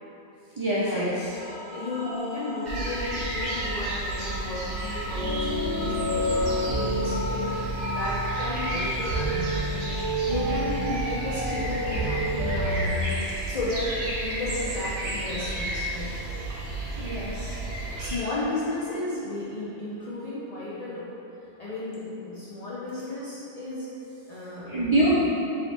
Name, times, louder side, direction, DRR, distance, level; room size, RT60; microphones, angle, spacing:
voice 1, 0.6-1.4 17.0-17.6 24.7-25.1, right 1 dB, 40° right, -10 dB, 0.4 m, -25 dB
sound 1, 1.4-9.1, equal, 70° left, 1.4 m, -37 dB
voice 2, 1.7-13.9 14.2-16.1 17.8-21.1 21.6-23.9 24.3-25.1, left 2 dB, 50° left, -9 dB, 0.5 m, -34 dB
sound 2, 2.6-18.2, right 2 dB, 80° right, 1.0 m, -32 dB
sound 3, 5.1-12.9, equal, 30° left, 1.2 m, -29 dB
3.9 x 2.8 x 3.2 m, 2.9 s
omnidirectional pair, 1.2 m